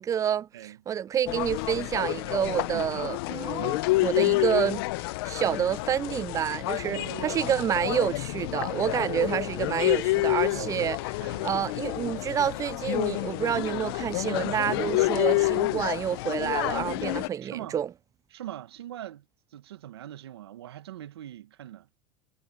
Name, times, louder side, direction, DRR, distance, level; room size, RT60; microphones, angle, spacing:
voice 1, 0.0-4.8 5.2-11.0 11.4-17.9, right 9 dB, 25° right, 0.4 m, -28 dB
sound 1, 1.3-17.3, left 20 dB, 70° left, 0.8 m, -29 dB
voice 2, 2.7-3.2 6.8-7.4 9.0-9.5 10.3-10.7 11.2-11.5 15.1-15.4 17.1-17.8 18.3-19.3 19.5-21.9, right 12 dB, 85° right, 1.7 m, -42 dB
hypercardioid pair, 95°, 13 cm